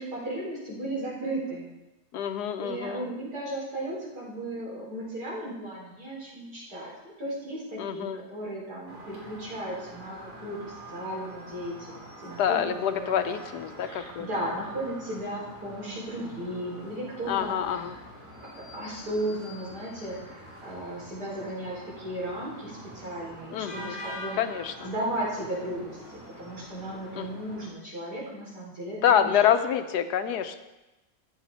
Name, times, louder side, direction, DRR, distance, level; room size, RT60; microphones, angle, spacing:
voice 1, 0.0-1.7 2.6-13.3 13.8-18.0 18.7-24.4 24.8-29.4, right 1 dB, 80° right, -6 dB, 4.9 m, -35 dB
voice 2, 2.1-3.1 7.8-8.2 12.4-14.3 17.3-18.0 23.5-24.0 24.4-24.9 27.2-27.3 29.0-30.6, left 9 dB, 85° left, 9 dB, 1.3 m, -26 dB
sound 1, 8.9-27.7, equal, 10° right, 3.0 m, -45 dB
13.5 x 9.0 x 4.2 m, 1.0 s
omnidirectional pair, 1.7 m